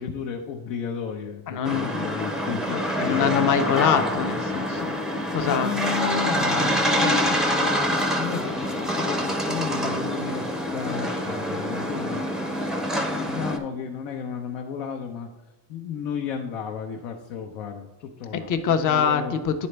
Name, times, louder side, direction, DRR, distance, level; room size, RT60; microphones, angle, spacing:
voice 1, 0.0-4.3 5.4-15.3 15.7-19.3, left 7 dB, 90° left, 1 dB, 0.9 m, -33 dB
voice 2, 1.5-2.1 3.0-4.9 5.3-5.7 18.3-19.7, left 7 dB, 40° left, 8 dB, 0.7 m, -24 dB
sound 1, 1.6-13.6, equal, ahead, 0.4 m, -26 dB
10.5 x 4.1 x 3.3 m, 1.0 s
cardioid pair, 135°, 47 cm